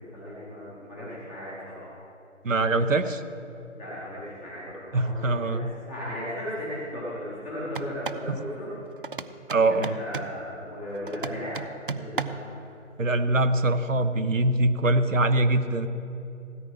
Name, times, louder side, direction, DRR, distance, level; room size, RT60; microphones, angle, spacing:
voice 1, 0.0-2.0 3.7-8.7 9.5-11.6 11.9-12.7, left 1 dB, 5° left, -9 dB, 1.0 m, -36 dB
voice 2, 2.4-3.2 4.9-5.7 8.3-8.4 9.5-9.9 13.0-15.9, right 2 dB, 80° right, 8 dB, 1.1 m, -23 dB
sound 1, 7.7-8.3 9.0-10.4 11.1-12.5, right 4 dB, 45° right, 0.5 m, -35 dB
17.0 x 9.8 x 5.6 m, 2.7 s
figure-of-eight pair, 155°, 38 cm